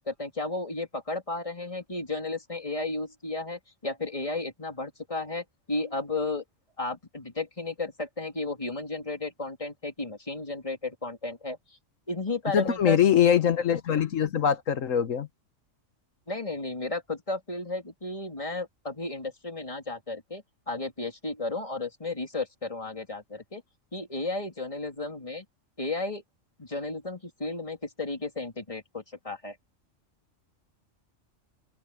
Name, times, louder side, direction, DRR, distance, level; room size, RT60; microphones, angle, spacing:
voice 1, 0.0-6.4 6.8-11.6 12.1-13.0 16.3-23.6 23.9-25.5 25.8-26.2 26.6-29.6, left 2 dB, 25° left, 3.5 m, -33 dB
voice 2, 12.5-15.3, left 8 dB, 80° left, 1.5 m, -23 dB
open air
omnidirectional pair, 1.3 m